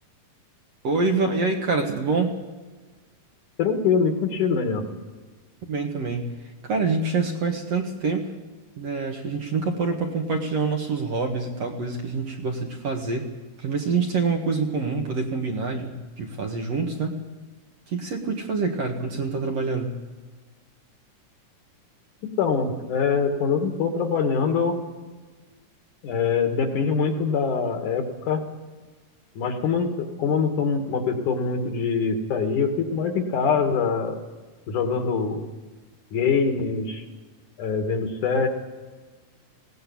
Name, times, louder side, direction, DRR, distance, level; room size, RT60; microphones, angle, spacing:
voice 1, 0.8-2.3 5.6-6.3 6.6-8.3 8.8-13.3 13.6-17.2 17.9-20.0, right 4 dB, 55° right, 2 dB, 2.4 m, -26 dB
voice 2, 3.6-4.8 22.2-24.8 26.0-28.4 29.4-34.2 34.7-35.5 36.1-37.0 37.6-38.5, left 5 dB, 65° left, 5 dB, 3.1 m, -24 dB
19.0 x 17.5 x 8.6 m, 1.4 s
omnidirectional pair, 4.0 m